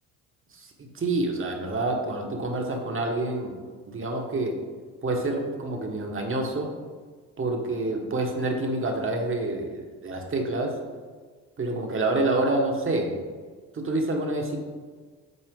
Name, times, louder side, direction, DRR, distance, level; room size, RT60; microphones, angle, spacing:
voice 1, 0.5-3.5 3.9-4.6 5.0-6.7 7.4-10.8 11.6-13.2 13.7-14.6, right 2 dB, 35° right, 2 dB, 1.5 m, -27 dB
8.2 x 4.3 x 3.8 m, 1.5 s
supercardioid pair, 65°, 36 cm